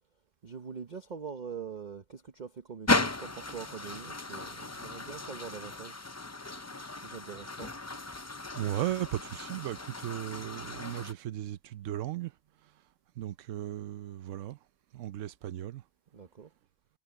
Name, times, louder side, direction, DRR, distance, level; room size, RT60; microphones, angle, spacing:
voice 1, 0.4-6.0 6.9-7.7 16.1-16.5, right 6 dB, 35° right, 0.9 m, -43 dB
sound 1, 2.9-11.1, left 2 dB, 20° left, 0.4 m, -35 dB
voice 2, 8.5-12.4 12.6-12.7 13.2-14.6 14.9-15.8, right 13 dB, 70° right, 1.0 m, -36 dB
omnidirectional pair, 1.4 m